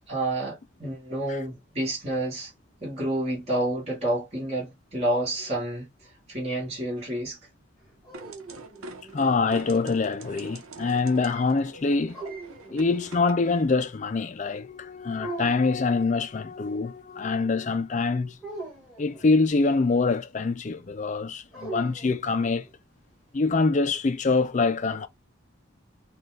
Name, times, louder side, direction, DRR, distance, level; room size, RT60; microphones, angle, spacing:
voice 1, 0.1-2.5 2.8-5.9 6.3-7.4, right 1 dB, 30° right, 1.9 m, -29 dB
sound 1, 7.8-9.7 12.1-13.4 15.2-16.0 18.4-19.5 21.5-22.7, right 2 dB, 5° right, 1.7 m, -41 dB
sound 2, 8.1-13.7, right 2 dB, 85° right, 0.9 m, -44 dB
voice 2, 9.1-12.2 12.7-18.4 19.0-22.7 23.3-25.1, left 4 dB, 35° left, 0.4 m, -25 dB
4.3 x 2.4 x 3.2 m
head